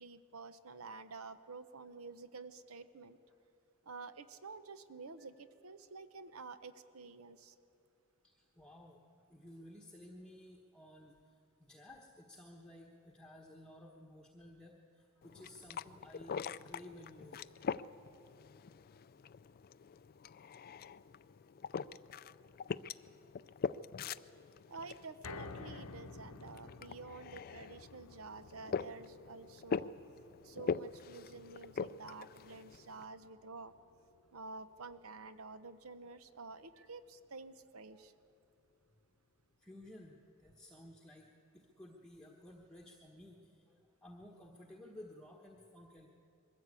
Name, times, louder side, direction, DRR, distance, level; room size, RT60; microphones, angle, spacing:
voice 1, 0.0-3.2 3.9-7.5 24.7-29.9 30.4-33.7 34.3-38.1, right 4 dB, 75° right, 12 dB, 0.9 m, -50 dB
voice 2, 8.2-9.0 9.3-17.5 18.9-19.0 21.1-21.2 23.5-23.9 24.2-24.6 35.2-35.3 37.9-38.0 39.6-46.1, left 1 dB, 5° left, -1 dB, 1.2 m, -55 dB
sound 1, 15.2-33.0, left 6 dB, 45° left, 0.4 m, -43 dB
sound 2, 25.2-37.5 37.9-38.0 38.4-38.5, left 3 dB, 80° left, 0.8 m, -54 dB
22.0 x 15.0 x 8.3 m, 2.6 s
head